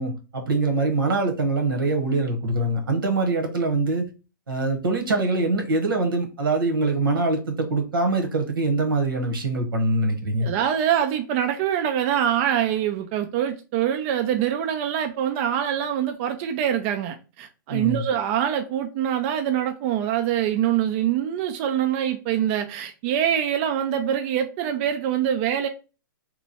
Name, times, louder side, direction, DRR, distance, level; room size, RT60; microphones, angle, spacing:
voice 1, 0.0-4.0 4.5-10.5 17.7-18.0, right 2 dB, 85° right, 1.2 m, -23 dB
voice 2, 10.4-25.7, right 10 dB, 35° right, 0.4 m, -24 dB
3.0 x 2.2 x 4.1 m
hypercardioid pair, 140°, 11 cm